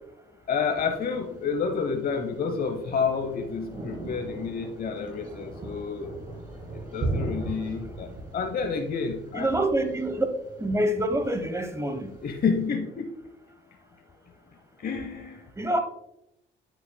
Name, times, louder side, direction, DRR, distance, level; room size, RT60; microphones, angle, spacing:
voice 1, 0.5-6.1 6.9-8.1 8.3-9.5 12.2-13.1 14.8-15.4, left 5 dB, 50° left, 5 dB, 0.8 m, -29 dB
Thunder, 0.7-12.7, right 2 dB, 45° right, 2.7 m, -38 dB
voice 2, 9.3-10.2 10.6-12.1 15.6-15.8, right 1 dB, 15° right, 8 dB, 1.0 m, -26 dB
8.9 x 7.4 x 2.2 m, 0.86 s
cardioid pair, 90°, 20 cm